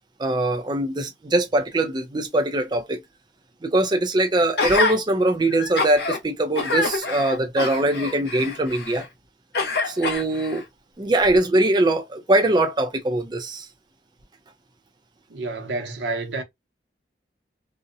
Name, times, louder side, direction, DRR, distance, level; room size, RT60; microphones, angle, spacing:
voice 1, 0.2-3.0 3.6-9.1 9.9-10.6 11.0-13.7, right 1 dB, 25° right, 0.4 m, -22 dB
Gasp, 4.6-5.0 5.5-6.2 6.6-9.1 9.5-10.6 11.3-11.4, left 3 dB, 60° left, 0.7 m, -26 dB
voice 2, 15.3-16.4, right 3 dB, 75° right, 0.7 m, -29 dB
2.6 x 2.0 x 2.4 m
head